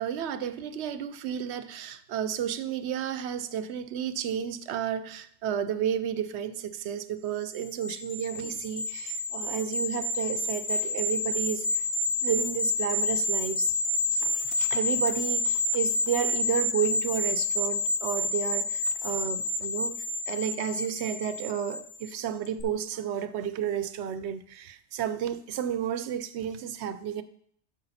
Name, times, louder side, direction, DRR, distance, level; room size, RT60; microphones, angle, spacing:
voice 1, 0.0-11.7 12.2-13.7 14.1-20.0 20.3-27.2, right 9 dB, 85° right, 0.9 m, -32 dB
sound 1, 7.5-22.1 22.4-22.6, left 2 dB, 85° left, 1.2 m, -29 dB
12.0 x 4.9 x 4.1 m
omnidirectional pair, 1.1 m